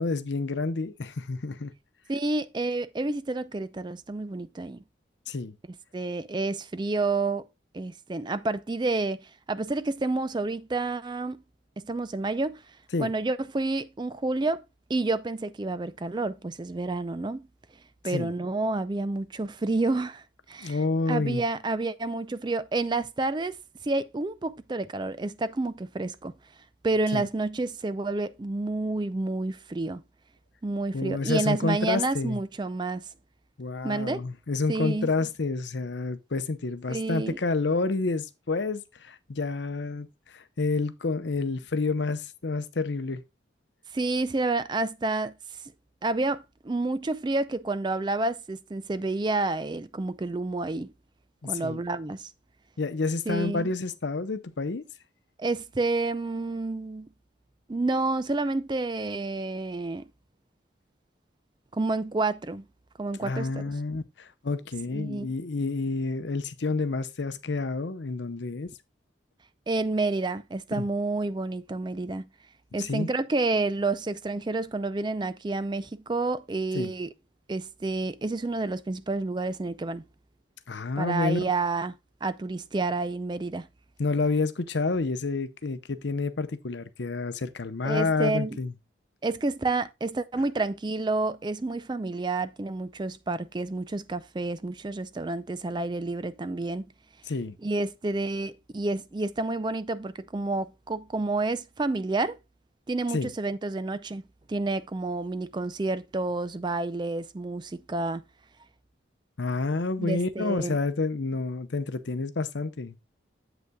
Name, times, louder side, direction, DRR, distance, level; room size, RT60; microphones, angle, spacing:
voice 1, 0.0-1.7 5.3-5.6 12.9-13.1 18.1-18.3 20.6-21.4 27.1-27.2 30.9-32.4 33.6-43.2 51.4-51.8 52.8-54.8 63.2-68.7 70.7-70.9 72.8-73.1 76.7-76.9 80.7-81.4 84.0-88.7 97.3-97.6 103.1-103.3 109.4-113.0, left 3 dB, 70° left, 0.7 m, -29 dB
voice 2, 2.1-4.8 5.9-7.4 7.7-11.4 11.8-12.6 13.0-14.6 14.9-17.5 18.0-20.8 21.1-23.6 23.8-26.3 26.8-30.0 30.6-33.1 33.8-34.3 34.7-35.1 36.9-37.4 43.9-45.3 46.0-50.9 51.4-52.3 53.3-53.7 55.4-57.1 57.7-60.1 61.7-62.6 63.0-63.6 64.9-65.3 69.7-72.3 72.7-77.1 77.5-80.0 81.0-81.9 82.2-83.7 87.8-88.6 89.2-96.9 97.6-102.4 102.9-104.2 104.5-108.2 110.0-110.8, right 2 dB, 25° right, 0.4 m, -29 dB
8.1 x 8.0 x 2.2 m
head